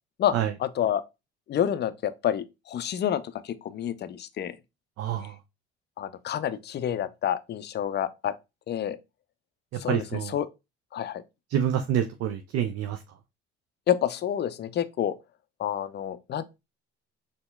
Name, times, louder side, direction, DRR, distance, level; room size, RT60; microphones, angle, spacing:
voice 1, 0.6-1.0 1.5-4.6 6.0-8.3 8.7-9.0 9.8-10.5 10.9-11.2 13.9-15.1 15.6-16.4, left 10 dB, 35° left, 0.5 m, -28 dB
voice 2, 5.0-5.3 9.9-10.3 11.5-13.0, right 10 dB, 50° right, 0.5 m, -27 dB
4.2 x 3.4 x 2.2 m
hypercardioid pair, 55°, 31 cm